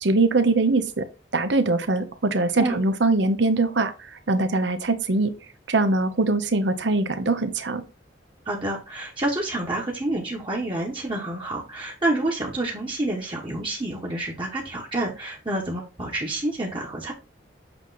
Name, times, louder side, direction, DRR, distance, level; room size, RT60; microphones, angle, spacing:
voice 1, 0.0-1.1 1.3-3.9 4.3-5.3 5.7-7.8, right 3 dB, 70° right, 10 dB, 0.8 m, -22 dB
voice 2, 8.4-17.1, right 1 dB, 25° right, -3 dB, 1.1 m, -28 dB
7.9 x 3.1 x 4.0 m, 0.31 s
head